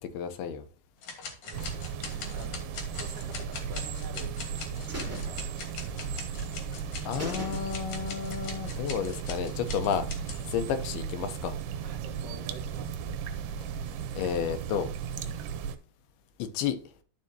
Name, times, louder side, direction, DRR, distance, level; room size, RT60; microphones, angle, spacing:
voice 1, 0.1-0.6 7.1-10.0 10.5-11.6 14.2-14.9 16.4-16.8, left 8 dB, 80° left, 2.7 m, -31 dB
sound 1, 1.0-10.4, left 5 dB, 55° left, 2.6 m, -42 dB
voice 2, 1.4-4.4 4.9-5.6 11.8-13.2, right 2 dB, 50° right, 1.3 m, -47 dB
sound 2, 1.5-15.8, right 7 dB, 80° right, 2.7 m, -36 dB
sound 3, 3.8-4.5 4.9-6.2 6.5-6.6 6.9-7.0 7.2-8.1 8.4-8.5, equal, 5° right, 1.8 m, -41 dB
12.5 x 4.8 x 2.7 m
omnidirectional pair, 4.5 m